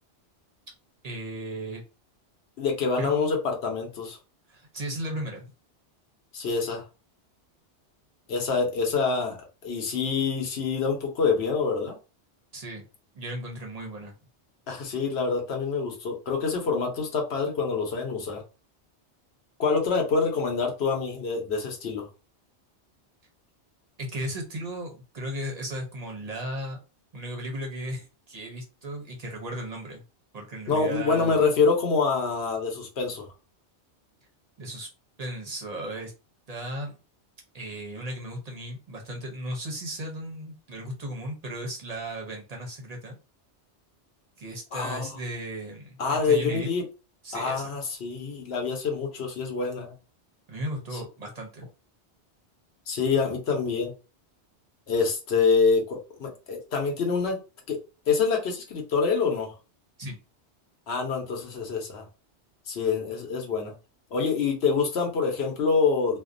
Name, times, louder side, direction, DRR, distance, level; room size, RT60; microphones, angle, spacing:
voice 1, 1.0-1.8 3.0-3.1 4.5-5.4 12.5-12.8 13.1-14.1 24.0-26.8 27.1-30.0 30.3-31.5 34.6-34.9 35.2-36.1 36.5-37.0 37.5-43.2 44.4-46.0 46.2-46.7 47.2-47.7 50.5-51.7 60.0-60.2, right 1 dB, 45° right, 1 dB, 0.5 m, -35 dB
voice 2, 2.6-4.2 6.3-6.8 8.3-11.9 14.7-18.4 19.6-22.1 30.7-33.3 44.7-45.2 46.0-46.8 47.3-49.9 50.9-51.0 52.9-53.9 54.9-57.4 57.7-57.8 58.1-59.5 60.9-62.0 62.7-63.7 64.1-66.2, left 5 dB, 70° left, 2 dB, 1.0 m, -26 dB
2.5 x 2.1 x 2.4 m, 0.32 s
omnidirectional pair, 1.2 m